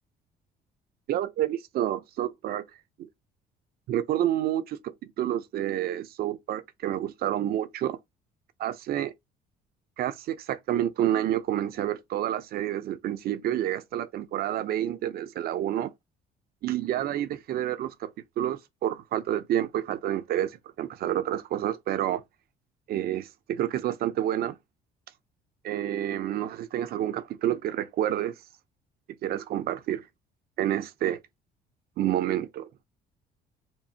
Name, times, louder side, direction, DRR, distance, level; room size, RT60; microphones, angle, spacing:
voice 1, 1.1-2.6 3.0-3.1 3.9-8.0 8.6-9.1 10.0-15.9 16.6-18.1 18.4-22.2 22.9-24.6 25.6-28.3 29.2-30.0 30.6-31.2 32.0-32.7, right 12 dB, 65° right, 0.7 m, -29 dB
4.5 x 2.6 x 2.8 m
cardioid pair, 110°, 17 cm